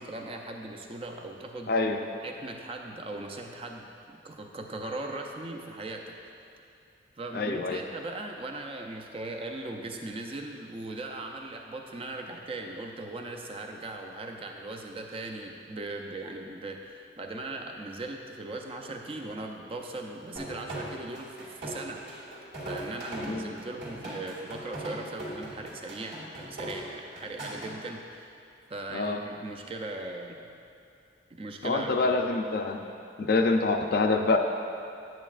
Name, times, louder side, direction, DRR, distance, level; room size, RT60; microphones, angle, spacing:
voice 1, 0.0-1.7 2.2-6.3 7.2-22.1 22.6-28.4 28.7-30.4 31.3-32.1, right 2 dB, 30° right, 2 dB, 0.5 m, -39 dB
voice 2, 1.7-2.0 7.3-7.8 23.3-23.5 28.9-29.2 31.6-32.8 33.2-34.4, left 3 dB, 55° left, 4 dB, 0.5 m, -26 dB
sound 1, 20.4-27.7, right 1 dB, 70° right, 1.9 m, -39 dB
9.3 x 8.5 x 2.5 m, 2.6 s
head